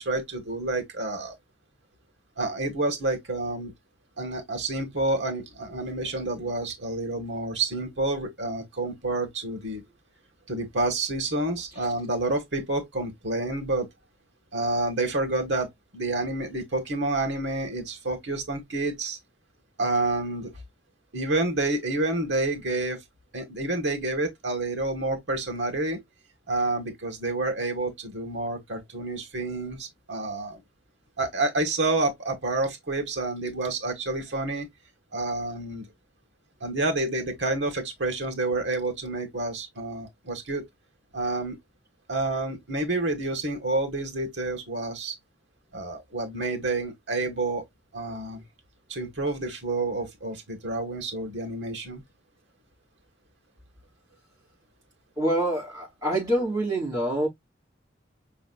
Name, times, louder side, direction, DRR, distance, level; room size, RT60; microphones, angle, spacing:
voice 1, 0.0-1.4 2.4-3.7 4.2-9.8 10.5-13.9 14.5-19.2 19.8-20.5 21.1-23.0 23.3-26.0 26.5-30.6 31.2-34.7 35.1-35.9 36.6-40.6 41.1-41.6 42.1-45.1 45.7-47.7 47.9-48.4 48.9-52.0, right 2 dB, 80° right, 1.7 m, -29 dB
voice 2, 55.2-57.3, right 1 dB, 20° right, 3.7 m, -26 dB
5.5 x 3.5 x 2.3 m
head